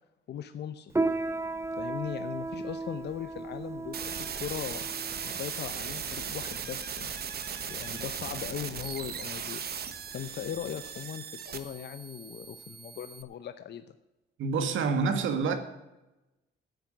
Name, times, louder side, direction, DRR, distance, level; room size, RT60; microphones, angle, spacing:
voice 1, 0.3-0.9 1.8-4.8 5.2-7.2 7.7-9.6 10.1-14.0, left 9 dB, 60° left, 0.8 m, -39 dB
Piano, 0.9-10.9, right 3 dB, 15° right, 1.0 m, -36 dB
sound 1, 3.9-13.2, right 7 dB, 55° right, 1.3 m, -38 dB
voice 2, 14.4-15.6, right 5 dB, 75° right, 1.8 m, -27 dB
10.5 x 8.2 x 8.8 m
cardioid pair, 90°, 20 cm